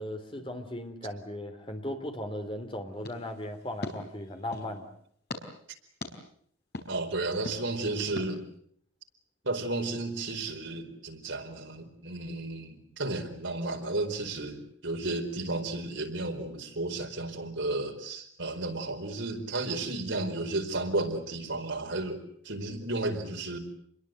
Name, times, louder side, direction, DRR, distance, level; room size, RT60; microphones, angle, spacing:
voice 1, 0.0-4.9, left 1 dB, 25° left, 6 dB, 3.5 m, -37 dB
sound 1, 3.0-4.7 5.3-5.4 6.0-6.1 6.7-6.9 7.4-7.6 8.2-8.3, left 1 dB, 50° left, 4.6 m, -40 dB
voice 2, 6.9-8.4 9.4-22.2 22.4-23.6, right 2 dB, 70° right, 4 dB, 4.7 m, -33 dB
28.0 x 22.0 x 8.0 m, 0.66 s
head